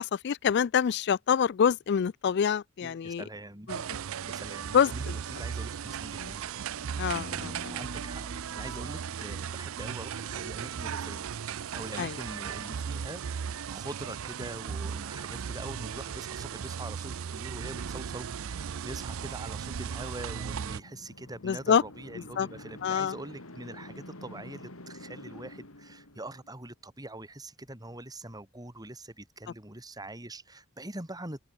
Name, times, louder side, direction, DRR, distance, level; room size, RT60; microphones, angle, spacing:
voice 1, 0.0-3.2 3.7-3.8 4.7-4.9 6.2-6.3 7.0-7.5 12.0-12.1 21.4-21.8 22.4-22.5 22.8-23.1, left 7 dB, 50° left, 0.3 m, -26 dB
voice 2, 2.8-3.7 4.0-6.4 7.3-11.3 11.7-31.4, right 1 dB, 20° right, 4.0 m, -43 dB
sound 1, 3.7-20.8, right 7 dB, 70° right, 0.5 m, -36 dB
sound 2, 7.1-10.9, right 1 dB, 45° right, 3.7 m, -47 dB
sound 3, 20.0-26.6, left 1 dB, 80° left, 5.0 m, -48 dB
open air
head